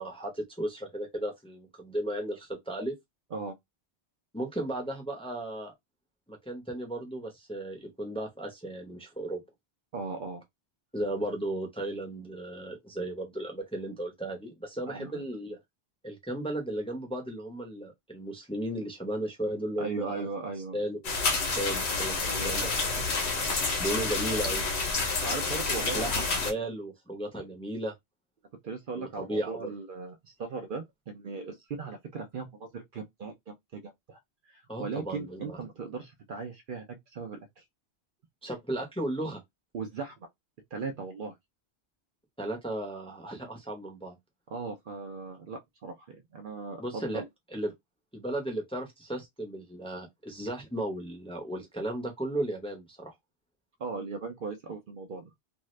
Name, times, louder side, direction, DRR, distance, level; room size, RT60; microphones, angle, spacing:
voice 1, 0.0-2.9 4.3-5.7 6.3-9.4 10.9-15.6 16.0-20.3 20.7-22.7 23.0-23.1 23.8-24.6 25.9-27.9 29.0-29.7 34.7-35.6 38.4-39.4 42.4-44.2 46.8-47.2 47.5-47.7 48.1-53.1, right 1 dB, 5° left, 0.6 m, -35 dB
voice 2, 9.9-10.4 14.9-15.2 19.8-20.8 22.3-22.7 25.2-26.3 28.6-34.2 34.5-37.6 39.7-40.3 40.7-41.3 44.5-47.3 53.8-55.3, right 4 dB, 55° right, 0.7 m, -38 dB
sound 1, 21.0-26.5, left 4 dB, 75° left, 1.0 m, -29 dB
2.7 x 2.4 x 3.1 m
omnidirectional pair, 1.1 m